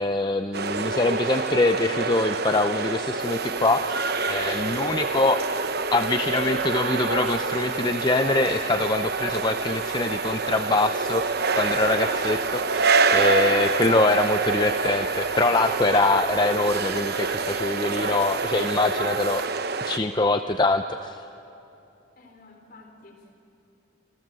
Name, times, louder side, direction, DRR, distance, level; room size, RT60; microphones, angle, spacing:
voice 1, 0.0-4.0 4.3-5.4 5.9-19.4 19.8-21.2, left 2 dB, 25° left, 7 dB, 0.7 m, -24 dB
sound 1, 0.5-20.0, right 4 dB, 55° right, 1.0 m, -26 dB
sound 2, 3.2-19.5, right 10 dB, 70° right, 2.7 m, -45 dB
voice 2, 22.2-23.3, left 2 dB, 50° left, 4 dB, 3.9 m, -50 dB
28.0 x 26.0 x 7.6 m, 2.8 s
head